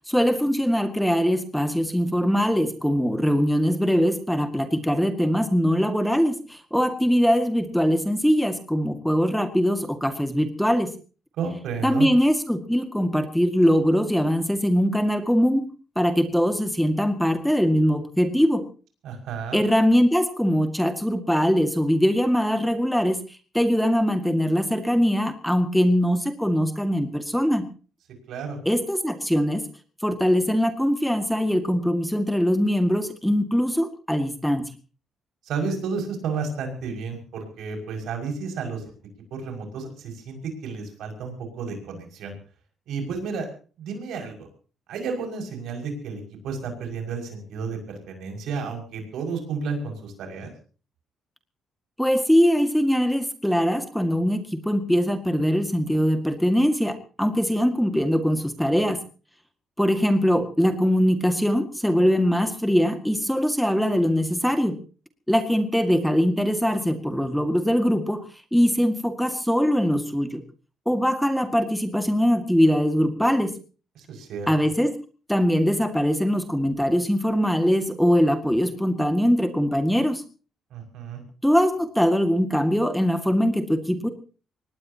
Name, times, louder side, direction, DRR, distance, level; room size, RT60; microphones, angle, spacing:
voice 1, 0.1-10.9 11.8-18.6 19.5-23.2 23.5-27.7 28.7-29.6 30.0-34.6 52.0-59.0 59.8-64.8 65.3-70.4 70.9-73.5 74.5-74.9 75.3-80.2 81.4-84.1, equal, ahead, 7 dB, 2.0 m, -22 dB
voice 2, 11.4-12.1 19.0-19.6 28.3-28.6 35.4-38.9 39.3-42.3 42.9-43.5 43.8-44.5 44.9-50.5 74.0-74.5 80.7-81.2, right 5 dB, 80° right, 3 dB, 6.0 m, -32 dB
24.5 x 19.0 x 2.9 m, 0.37 s
cardioid pair, 90°, 0 cm